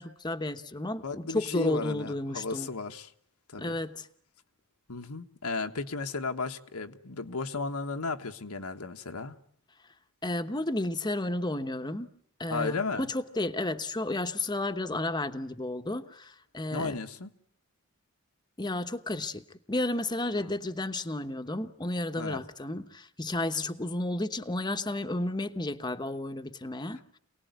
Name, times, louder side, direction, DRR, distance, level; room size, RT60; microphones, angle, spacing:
voice 1, 0.0-2.7 3.6-4.1 10.2-12.1 12.4-17.0 18.6-27.2, left 2 dB, 20° left, 1.1 m, -32 dB
voice 2, 1.0-3.1 3.5-3.8 4.9-9.4 12.5-13.1 16.7-17.3 20.5-20.6 22.2-22.4, left 4 dB, 85° left, 1.5 m, -34 dB
27.5 x 19.0 x 9.4 m
head